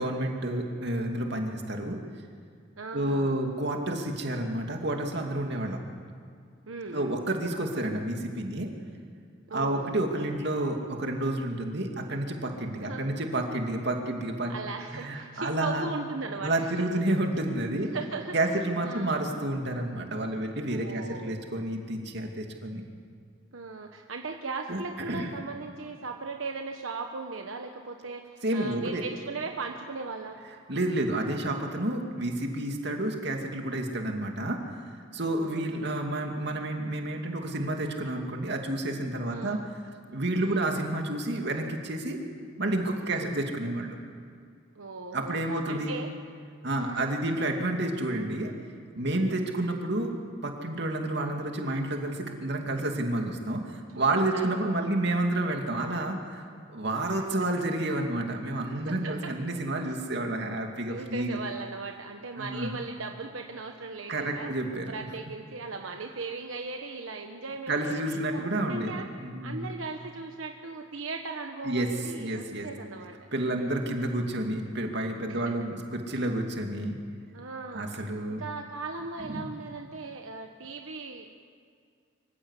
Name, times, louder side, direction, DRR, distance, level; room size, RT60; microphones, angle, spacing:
voice 1, 0.0-2.0 2.9-5.8 6.9-8.7 9.5-14.5 14.9-15.9 16.4-17.9 18.3-22.8 24.7-24.8 25.1-25.3 28.4-29.0 30.7-34.6 35.1-39.6 40.1-42.2 42.6-44.0 45.1-46.0 46.6-48.5 48.9-50.1 50.4-56.4 56.7-61.4 62.4-62.8 64.1-64.9 67.7-69.7 71.6-71.9 72.2-72.7 73.3-77.0 77.7-78.4 79.3-79.5, right 1 dB, 55° right, 2 dB, 2.6 m, -30 dB
voice 2, 2.8-3.4 6.7-7.2 9.5-9.9 12.8-13.0 14.5-16.9 17.9-18.3 18.8-19.1 20.7-21.4 23.5-30.4 35.4-35.9 39.3-39.7 40.4-40.7 43.1-43.4 44.7-45.4 45.7-46.1 46.8-47.1 49.0-49.4 53.9-54.9 57.2-57.5 58.7-59.3 60.9-64.5 64.9-69.1 69.4-73.9 75.3-75.5 77.3-77.9 78.3-81.3, right 3 dB, 85° right, 3 dB, 1.2 m, -38 dB
25.0 x 15.5 x 8.3 m, 2.2 s
head